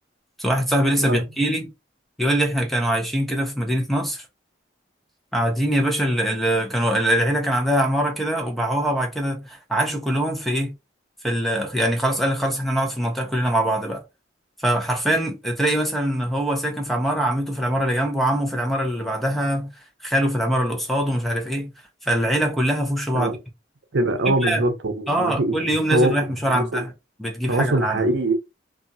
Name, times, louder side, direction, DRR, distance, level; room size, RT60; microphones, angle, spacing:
voice 1, 0.4-1.7 2.2-4.3 5.3-10.7 11.2-14.0 14.6-19.7 20.0-21.7 22.0-23.4 24.3-24.6 25.1-26.9 27.2-28.1, right 1 dB, ahead, 0.4 m, -23 dB
voice 2, 23.9-26.1 26.5-26.8 27.5-28.3, right 1 dB, 75° right, 0.7 m, -22 dB
2.8 x 2.3 x 2.6 m
head